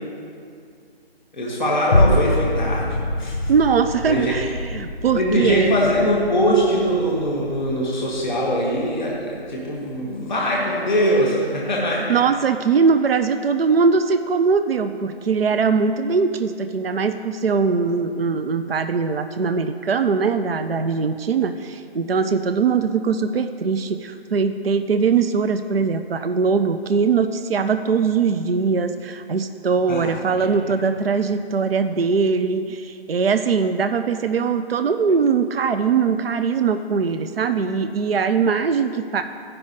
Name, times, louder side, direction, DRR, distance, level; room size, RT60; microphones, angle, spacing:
voice 1, 1.3-3.4 4.1-4.4 5.1-12.1 29.9-30.5, equal, ahead, -12 dB, 0.7 m, -22 dB
sound 1, 1.9-10.5 10.9-11.0, left 1 dB, 25° left, 0.8 m, -26 dB
voice 2, 3.5-5.7 12.1-39.2, right 5 dB, 65° right, 9 dB, 0.5 m, -21 dB
14.5 x 5.5 x 4.0 m, 2.3 s
figure-of-eight pair, 155°, 32 cm